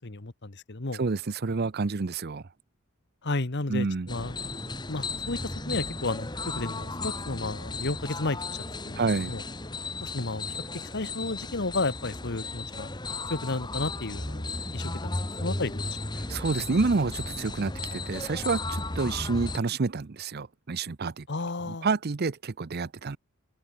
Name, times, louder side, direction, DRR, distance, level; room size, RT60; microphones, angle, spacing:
voice 1, 0.0-1.0 3.2-4.4 4.9-9.4 10.0-12.9 13.3-16.0 21.3-21.9, left 2 dB, 50° left, 1.3 m, -33 dB
voice 2, 1.0-2.4 3.7-4.1 9.0-9.3 16.3-21.3 21.7-23.2, right 4 dB, 45° right, 0.6 m, -28 dB
sound 1, 4.1-19.6, left 2 dB, 20° left, 1.9 m, -35 dB
open air
head